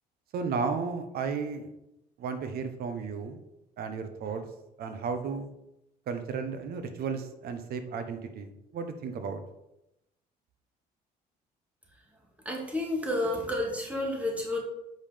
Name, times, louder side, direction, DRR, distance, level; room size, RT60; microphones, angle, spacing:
voice 1, 0.3-1.7 2.2-3.4 3.8-4.5 4.8-5.5 6.1-9.4, right 5 dB, 65° right, 8 dB, 1.2 m, -34 dB
voice 2, 12.4-14.6, left 1 dB, 10° right, -1 dB, 2.3 m, -30 dB
8.0 x 5.5 x 5.2 m, 0.88 s
cardioid pair, 110°, 17 cm